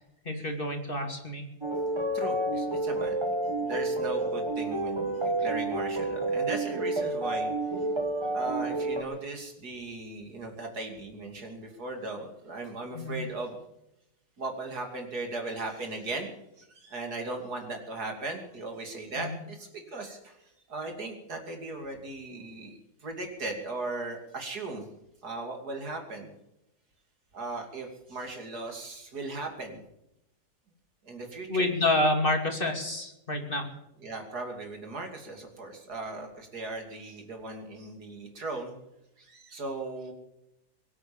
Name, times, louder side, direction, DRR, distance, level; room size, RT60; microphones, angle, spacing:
voice 1, 0.2-1.4 12.9-13.2 19.2-19.4 31.5-33.7, left 2 dB, 35° left, 3 dB, 2.8 m, -28 dB
sound 1, 1.6-9.0, right 2 dB, 20° right, 1.4 m, -30 dB
voice 2, 2.1-3.2 3.6-7.9 8.3-13.6 14.4-16.3 16.6-24.9 25.2-26.3 27.3-29.8 31.0-31.7 34.0-38.7 39.2-40.1, right 2 dB, 85° right, 3 dB, 3.4 m, -38 dB
23.0 x 8.7 x 7.1 m, 0.85 s
omnidirectional pair, 1.6 m